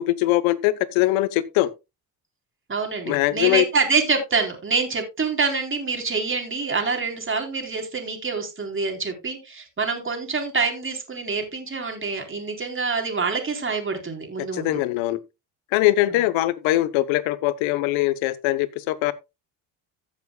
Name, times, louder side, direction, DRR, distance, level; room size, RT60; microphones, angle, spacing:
voice 1, 0.0-1.7 3.0-3.6 14.4-15.2 15.7-19.1, left 16 dB, 85° left, 1.1 m, -22 dB
voice 2, 2.7-14.8, right 4 dB, 25° right, 3.8 m, -26 dB
15.0 x 7.4 x 2.3 m
supercardioid pair, 85°, 46 cm